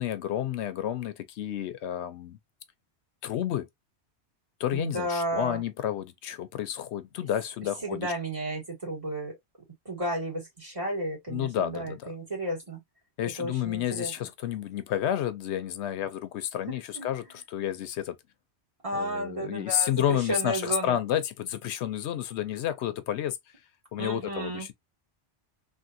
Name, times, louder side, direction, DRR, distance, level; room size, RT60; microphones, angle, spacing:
voice 1, 0.0-2.4 3.2-3.7 4.6-8.1 11.3-12.1 13.2-18.2 18.9-23.4 23.9-24.7, left 11 dB, 85° left, 0.9 m, -30 dB
voice 2, 4.7-5.6 7.8-9.4 9.9-12.8 13.4-14.1 17.0-17.2 18.8-21.0 24.0-24.7, right 1 dB, 30° right, 2.0 m, -33 dB
3.6 x 2.6 x 2.5 m
omnidirectional pair, 1.1 m